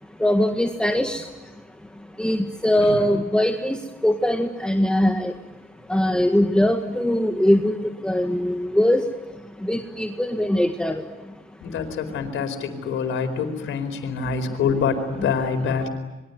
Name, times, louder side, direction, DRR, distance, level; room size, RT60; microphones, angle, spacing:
voice 1, 0.2-1.2 2.2-3.8 4.0-5.3 5.9-9.0 9.6-11.0, left 1 dB, 5° left, 4 dB, 1.8 m, -21 dB
voice 2, 11.6-15.9, left 6 dB, 85° left, 8 dB, 4.6 m, -26 dB
27.0 x 23.0 x 9.4 m, 1.1 s
cardioid pair, 90°, 20 cm